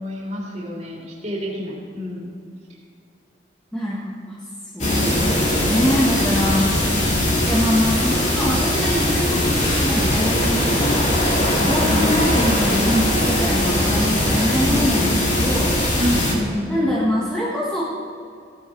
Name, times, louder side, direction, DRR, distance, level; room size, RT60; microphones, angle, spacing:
voice 1, 0.0-2.3 4.8-5.3 11.7-12.3 14.6-15.1 16.0-16.9, left 1 dB, 35° right, -4 dB, 3.1 m, -27 dB
voice 2, 3.7-4.4 4.7-6.8 7.4-11.2 11.6-15.8 16.7-17.8, equal, 5° left, -7 dB, 1.4 m, -24 dB
sound 1, 4.8-16.3, left 1 dB, 40° left, 2.4 m, -20 dB
15.5 x 9.7 x 4.6 m, 2.3 s
head